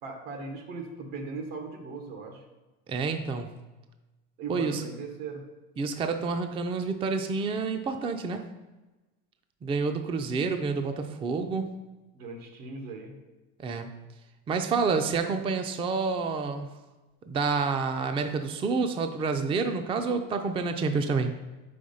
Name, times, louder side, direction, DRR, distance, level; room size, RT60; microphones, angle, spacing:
voice 1, 0.0-2.4 4.4-5.4 12.1-13.1, right 4 dB, 85° right, 3 dB, 1.5 m, -38 dB
voice 2, 2.9-3.6 4.5-4.8 5.8-8.4 9.6-11.8 13.6-14.0 14.5-16.7 17.3-21.3, right 4 dB, 20° right, 7 dB, 0.3 m, -28 dB
5.0 x 4.2 x 5.4 m, 1.1 s
cardioid pair, 125°, 31 cm